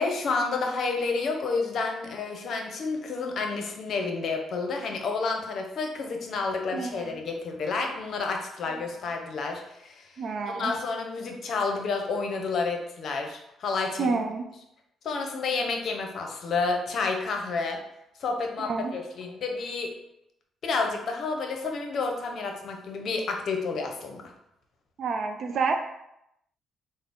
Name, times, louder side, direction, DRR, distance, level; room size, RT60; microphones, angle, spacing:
voice 1, 0.0-10.1 10.5-14.1 15.0-17.8 18.2-19.9 20.6-24.2, left 4 dB, 60° left, 3 dB, 0.6 m, -30 dB
voice 2, 6.7-7.1 10.2-10.7 14.0-14.4 18.6-18.9 25.0-25.7, right 4 dB, 60° right, 5 dB, 0.3 m, -28 dB
3.8 x 2.0 x 3.6 m, 0.82 s
cardioid pair, 90°, 0 cm